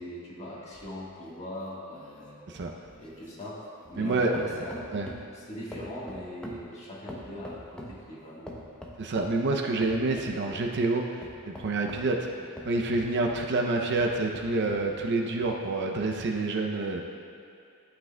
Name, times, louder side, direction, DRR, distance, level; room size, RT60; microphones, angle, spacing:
voice 1, 0.0-2.4 3.0-4.9 5.3-8.7, left 1 dB, 30° left, -6 dB, 1.4 m, -41 dB
sound 1, 0.7-4.1 4.3-5.4 5.7-8.0 8.5-9.4 9.8-10.7 11.2-13.5 14.0-14.9 15.4-15.5, equal, 5° left, 0.6 m, -44 dB
voice 2, 4.0-4.3 4.9-5.1 9.0-12.3 12.7-17.0, right 3 dB, 50° right, 2 dB, 0.5 m, -28 dB
11.5 x 5.9 x 2.2 m, 2.5 s
head